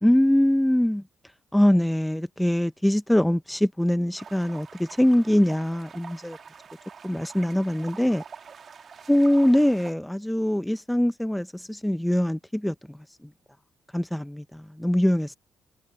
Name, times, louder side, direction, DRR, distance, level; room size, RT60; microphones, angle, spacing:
voice 1, 0.0-1.0 1.5-6.4 7.0-8.2 9.1-13.0 13.9-15.4, left 1 dB, 5° left, 0.6 m, -23 dB
sound 1, 4.2-9.9, right 6 dB, 50° right, 1.9 m, -46 dB
cardioid pair, 90°, 0 cm